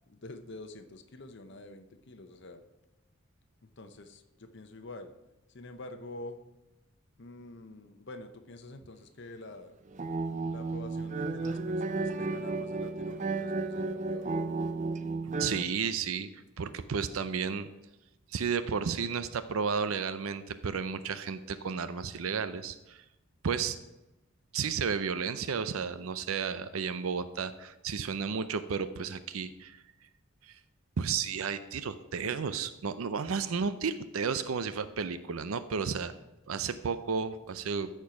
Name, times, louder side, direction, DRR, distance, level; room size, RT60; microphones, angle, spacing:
voice 1, 0.1-2.6 3.6-5.1 5.5-6.4 7.2-9.8 10.5-14.3, left 2 dB, 55° left, 7 dB, 0.8 m, -47 dB
sound 1, 9.9-15.6, right 3 dB, 35° right, 0.5 m, -33 dB
voice 2, 15.4-17.7 18.3-23.0 23.4-23.8 24.5-29.8 30.4-30.6 31.0-36.1 36.5-37.9, right 6 dB, 85° right, 12 dB, 0.5 m, -33 dB
13.0 x 4.6 x 5.8 m, 0.99 s
head